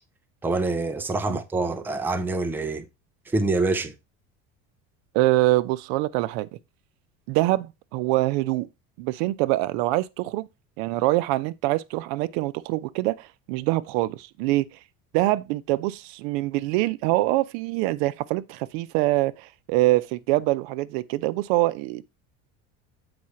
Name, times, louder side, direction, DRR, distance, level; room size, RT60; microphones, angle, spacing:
voice 1, 0.4-2.9 3.3-3.9, right 3 dB, 5° right, 0.5 m, -26 dB
voice 2, 5.1-6.5 7.3-8.7 9.0-10.5 10.8-14.7 15.1-22.0, right 18 dB, 85° right, 0.6 m, -24 dB
7.9 x 4.8 x 4.3 m
cardioid pair, 165°, 30 cm